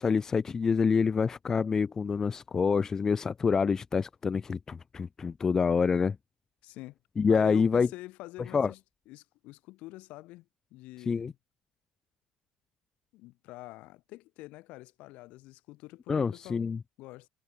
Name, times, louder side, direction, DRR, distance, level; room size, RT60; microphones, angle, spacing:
voice 1, 0.0-6.2 7.2-7.9 8.5-8.7 11.1-11.3 16.1-16.8, left 5 dB, 25° left, 0.6 m, -27 dB
voice 2, 6.6-7.0 7.3-8.8 9.1-11.3 13.1-16.7 17.0-17.3, left 19 dB, 70° left, 2.5 m, -46 dB
cardioid pair, 130°, 2 cm